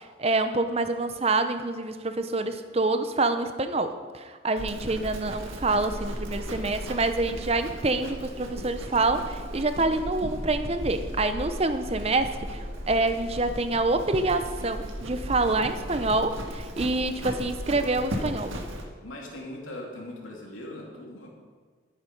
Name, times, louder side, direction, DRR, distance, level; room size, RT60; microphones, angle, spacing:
voice 1, 0.0-18.5, right 2 dB, 30° right, 9 dB, 0.7 m, -27 dB
Livestock farm animals working animals, 4.6-18.8, equal, 80° right, 1.7 m, -36 dB
voice 2, 15.7-16.1 19.0-21.3, left 1 dB, 80° left, -2 dB, 2.9 m, -40 dB
12.5 x 9.6 x 5.4 m, 1.5 s
head